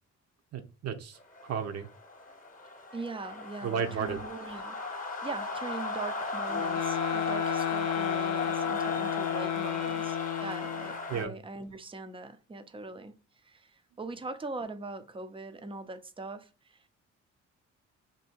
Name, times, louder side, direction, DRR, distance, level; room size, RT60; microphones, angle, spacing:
voice 1, 0.5-1.9 3.6-4.2 11.1-11.3, right 7 dB, 55° right, 0.7 m, -33 dB
sound 1, 1.3-11.2, left 2 dB, 25° left, 0.9 m, -36 dB
voice 2, 2.9-13.1 13.4-16.9, right 3 dB, 20° right, 0.5 m, -41 dB
sound 2, 6.5-11.0, left 13 dB, 80° left, 0.4 m, -33 dB
2.7 x 2.7 x 4.3 m
cardioid pair, 90°, 30 cm